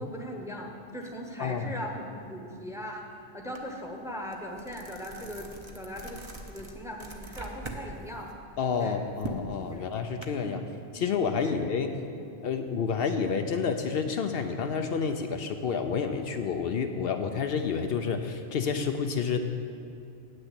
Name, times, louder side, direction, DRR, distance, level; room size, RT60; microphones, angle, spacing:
voice 1, 0.0-8.3 8.8-9.0 9.7-9.8 10.4-10.7 11.4-11.6, equal, 5° right, 1 dB, 0.9 m, -39 dB
voice 2, 1.4-1.7 8.6-10.6 10.9-12.0 12.4-19.4, left 6 dB, 70° left, 6 dB, 0.8 m, -29 dB
sound 1, 3.5-3.7 4.1-7.8 8.2-10.2, right 2 dB, 30° right, 0.9 m, -42 dB
8.6 x 6.5 x 8.1 m, 2.6 s
omnidirectional pair, 1.1 m